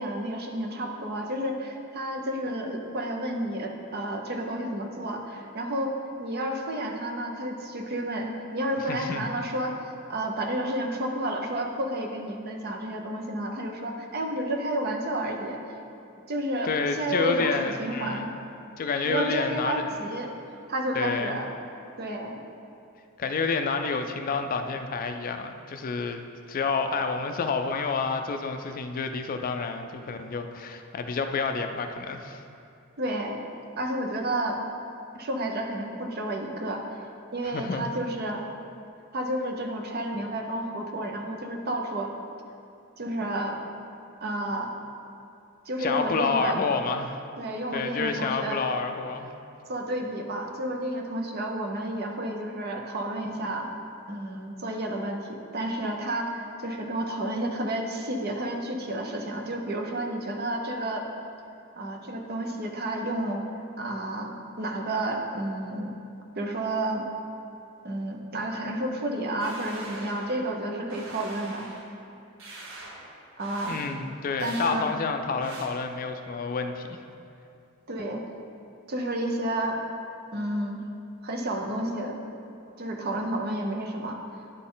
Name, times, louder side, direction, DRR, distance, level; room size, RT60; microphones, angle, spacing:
voice 1, 0.0-5.9 6.2-9.8 10.1-15.6 16.3-18.3 19.0-20.3 20.7-21.5 22.0-22.4 33.0-33.4 33.8-34.6 35.1-36.8 37.3-38.5 39.1-42.1 43.0-43.6 44.2-44.7 45.7-46.6 47.4-48.6 49.7-53.7 54.1-61.0 61.8-63.4 63.8-65.9 66.4-67.1 67.8-71.7 73.4-73.8 74.4-74.9 77.9-78.2 78.9-79.8 80.3-80.9 81.2-82.2 82.8-84.2, right 1 dB, 50° right, 3 dB, 0.7 m, -31 dB
voice 2, 8.9-9.3 16.6-18.3 18.8-19.8 20.9-21.4 23.2-32.4 37.4-37.9 45.8-47.2 47.7-49.3 73.7-77.0, left 4 dB, 40° left, 6 dB, 0.3 m, -29 dB
sound 1, 69.4-70.5 70.9-71.9 72.4-73.0 73.4-73.9 74.4-74.8 75.4-75.6, right 2 dB, 65° right, 1.1 m, -43 dB
10.5 x 4.1 x 3.8 m, 2.6 s
head